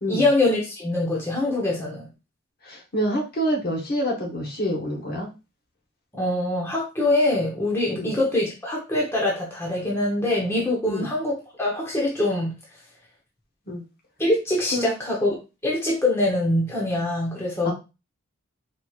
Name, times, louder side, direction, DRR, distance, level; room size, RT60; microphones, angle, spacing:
voice 1, 0.1-2.1 6.1-12.5 14.2-15.3 15.6-17.7, left 2 dB, 10° left, -3 dB, 0.8 m, -24 dB
voice 2, 2.6-5.3 7.9-8.1 10.8-11.1 13.7-13.8 14.7-14.9 17.6-17.7, equal, 45° left, 0 dB, 1.0 m, -27 dB
4.4 x 3.0 x 2.4 m, 0.28 s
head